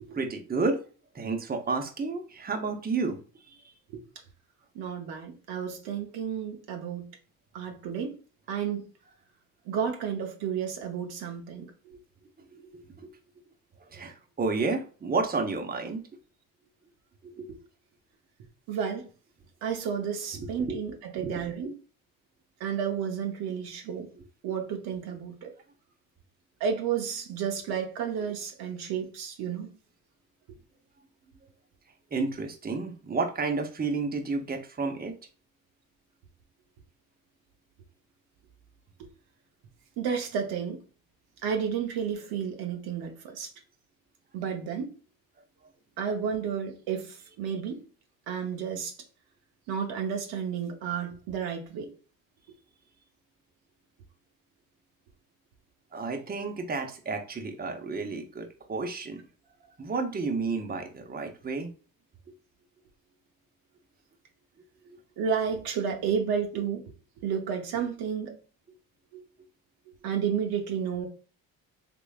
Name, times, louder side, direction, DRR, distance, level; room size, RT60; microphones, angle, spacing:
voice 1, 0.1-0.8 1.1-3.2 3.5-3.7 12.5-13.1 13.9-16.0 17.2-17.5 20.3-20.8 21.2-21.7 24.2-24.3 32.1-35.2 47.3-47.4 55.9-59.2 59.8-61.7 66.1-66.2, right 4 dB, 25° right, 0.8 m, -31 dB
voice 2, 4.7-7.1 7.5-8.1 8.5-8.8 9.7-11.7 18.7-19.1 19.6-21.7 22.6-24.1 24.4-25.5 26.6-29.7 40.0-40.8 41.4-43.5 44.3-44.9 46.0-47.8 48.3-48.9 49.7-51.9 65.2-66.8 67.2-68.4 69.1-69.2 70.0-71.1, right 7 dB, 80° right, 0.9 m, -31 dB
3.5 x 3.0 x 2.3 m
supercardioid pair, 75°, 36 cm